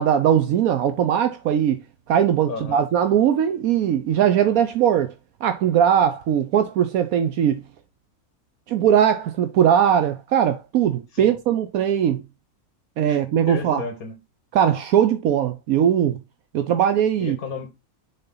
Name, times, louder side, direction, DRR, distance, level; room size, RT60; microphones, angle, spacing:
voice 1, 0.0-1.8 2.1-5.1 5.4-7.6 8.7-12.2 13.0-13.8 14.5-16.2 16.5-17.4, right 9 dB, 75° right, 1.1 m, -20 dB
voice 2, 2.5-2.8 11.1-11.4 13.1-13.2 13.5-14.1 17.2-17.9, left 5 dB, 75° left, 1.9 m, -33 dB
6.7 x 4.2 x 3.8 m
omnidirectional pair, 1.5 m